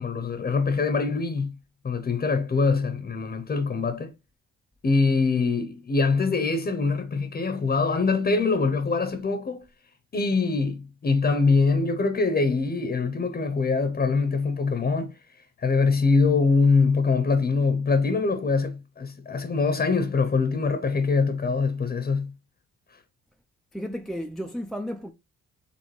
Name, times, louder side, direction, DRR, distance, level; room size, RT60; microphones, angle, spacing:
voice 1, 0.0-1.6 1.8-4.1 4.8-9.6 10.1-15.1 15.6-22.3, left 4 dB, 30° left, 0.8 m, -23 dB
voice 2, 23.7-25.1, equal, ahead, 0.4 m, -33 dB
5.1 x 3.2 x 3.2 m
cardioid pair, 90°, 30 cm